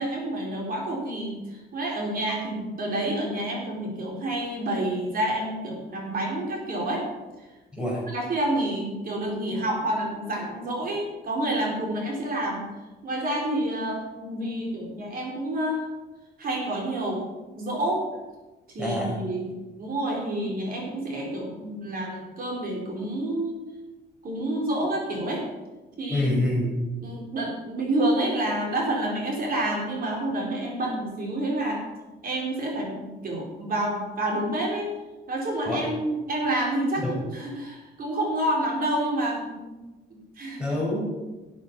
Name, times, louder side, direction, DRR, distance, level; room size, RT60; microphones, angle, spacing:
voice 1, 0.0-1.4 1.7-7.1 8.1-12.7 13.0-15.9 16.4-17.2 17.6-18.0 18.7-19.5 19.8-23.6 24.2-25.5 26.0-26.3 27.0-31.8 32.2-34.9 35.3-39.7 40.1-40.6, right 1 dB, 50° right, -1 dB, 4.1 m, -28 dB
voice 2, 7.7-8.0 18.8-19.2 26.1-26.8 35.6-35.9 37.0-37.2 40.6-41.0, left 1 dB, 5° right, -4 dB, 5.2 m, -26 dB
13.0 x 8.1 x 6.0 m, 1.2 s
cardioid pair, 135°, 20 cm